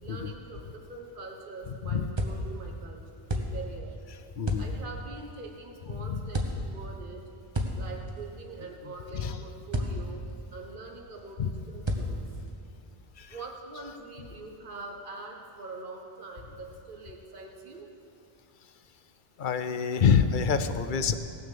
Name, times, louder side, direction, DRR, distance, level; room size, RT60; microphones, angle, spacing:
voice 1, 0.0-3.0 3.3-4.0 4.6-7.2 7.7-10.2 10.5-12.2 13.3-17.9, right 3 dB, 55° right, 1 dB, 1.5 m, -43 dB
sound 1, 2.2-2.7 3.3-3.8 4.4-5.0 6.3-6.9 7.5-8.4 9.7-10.3 11.9-12.5, equal, 30° right, 1.0 m, -32 dB
voice 2, 4.4-4.7 5.9-6.2 9.1-9.4 11.4-11.5 13.2-13.3 19.4-21.2, left 6 dB, 60° left, 10 dB, 0.7 m, -26 dB
17.0 x 6.5 x 6.8 m, 2.5 s
omnidirectional pair, 1.0 m